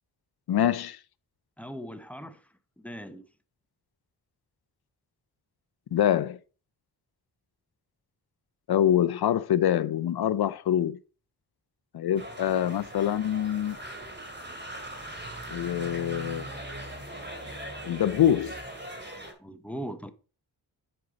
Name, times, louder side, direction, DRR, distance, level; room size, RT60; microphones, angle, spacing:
voice 1, 0.5-1.0 5.9-6.4 8.7-11.0 11.9-13.8 15.5-16.5 17.8-18.6, left 10 dB, 65° left, 0.6 m, -25 dB
voice 2, 1.6-2.4 2.8-3.3 19.4-20.1, equal, 5° left, 0.7 m, -39 dB
sound 1, 12.1-19.3, right 1 dB, 25° right, 2.5 m, -40 dB
7.8 x 5.5 x 5.0 m
wide cardioid pair, 130°, 40 cm